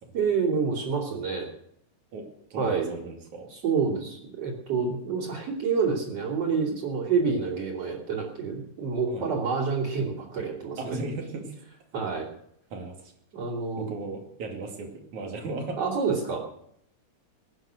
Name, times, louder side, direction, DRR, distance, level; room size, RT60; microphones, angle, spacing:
voice 1, 0.1-1.5 2.5-2.9 3.5-11.0 11.9-12.3 13.3-13.9 15.8-16.5, right 5 dB, 60° right, -7 dB, 4.2 m, -28 dB
voice 2, 2.1-3.5 9.1-9.3 10.8-11.5 12.7-13.1 13.8-15.8, right 2 dB, 80° right, 2 dB, 3.9 m, -36 dB
21.0 x 9.7 x 6.5 m, 0.72 s
omnidirectional pair, 3.3 m